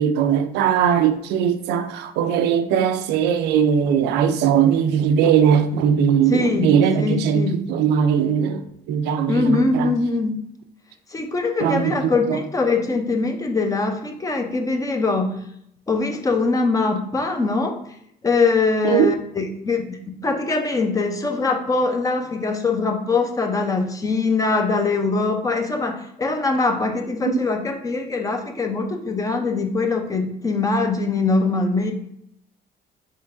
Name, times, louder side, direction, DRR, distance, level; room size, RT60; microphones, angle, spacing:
voice 1, 0.0-9.9 11.6-12.4 18.8-19.1 27.2-27.4, right 8 dB, 85° right, 0.4 m, -20 dB
voice 2, 6.3-7.5 9.3-10.4 11.1-15.4 15.9-17.8 18.2-31.9, left 3 dB, 20° left, 0.6 m, -22 dB
4.3 x 3.6 x 2.5 m
cardioid pair, 110°, 17 cm